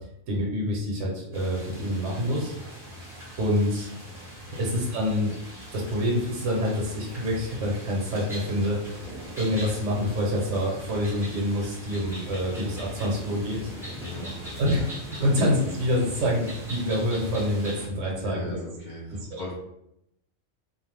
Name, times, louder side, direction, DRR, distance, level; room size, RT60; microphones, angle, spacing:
voice 1, 0.3-2.5 3.4-3.9 4.5-5.3 5.7-9.1 9.4-13.6 14.6-14.8 15.1-18.6 19.3-19.4, equal, 65° right, -3 dB, 1.0 m, -26 dB
sound 1, 1.3-17.9, equal, 5° right, 0.6 m, -40 dB
voice 2, 14.0-14.6 15.2-15.3 18.1-19.5, left 1 dB, 50° left, -7 dB, 0.5 m, -38 dB
2.5 x 2.1 x 3.2 m, 0.80 s
omnidirectional pair, 1.4 m